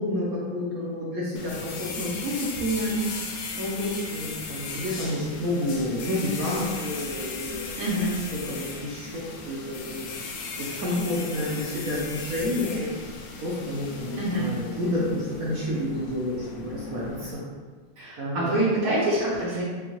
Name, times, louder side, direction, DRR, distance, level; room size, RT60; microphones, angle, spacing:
voice 1, 0.0-3.0 3.6-7.7 8.5-10.0 10.6-12.9 13.4-17.4 18.2-18.5, left 1 dB, 65° right, -5 dB, 0.9 m, -29 dB
sound 1, 1.4-17.4, left 4 dB, 80° left, 1.4 m, -37 dB
voice 2, 7.7-8.1 14.1-14.5 18.0-19.6, right 1 dB, 85° right, -11 dB, 2.3 m, -25 dB
5.5 x 2.2 x 3.0 m, 1.4 s
omnidirectional pair, 2.3 m